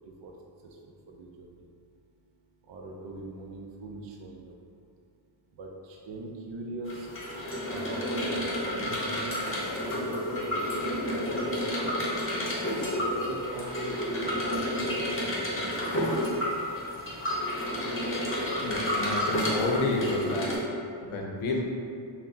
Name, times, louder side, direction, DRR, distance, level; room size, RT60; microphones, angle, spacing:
voice 1, 1.1-1.6 2.7-4.5 5.6-7.1 7.7-11.2 11.5-12.0 12.9-16.4, right 2 dB, 60° right, -1 dB, 0.6 m, -42 dB
sound 1, 6.9-20.6, left 1 dB, 25° left, 0.7 m, -30 dB
voice 2, 18.6-20.6 21.0-21.6, left 2 dB, 75° left, 0 dB, 0.7 m, -30 dB
5.7 x 2.1 x 2.7 m, 2.4 s
wide cardioid pair, 135°, 50 cm